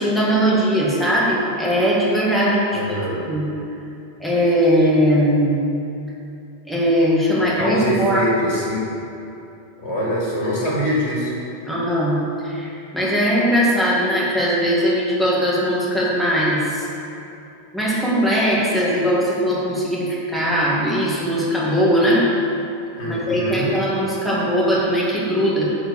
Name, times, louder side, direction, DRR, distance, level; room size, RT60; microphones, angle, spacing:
voice 1, 0.0-3.0 3.3-3.5 4.2-5.7 6.7-8.3 11.6-16.9 17.7-22.3 23.1-25.7, equal, ahead, -6 dB, 1.9 m, -20 dB
voice 2, 2.7-3.2 7.3-8.9 9.8-11.3 23.0-23.7, equal, 90° left, -4 dB, 2.2 m, -24 dB
9.6 x 4.6 x 7.1 m, 2.8 s
omnidirectional pair, 1.1 m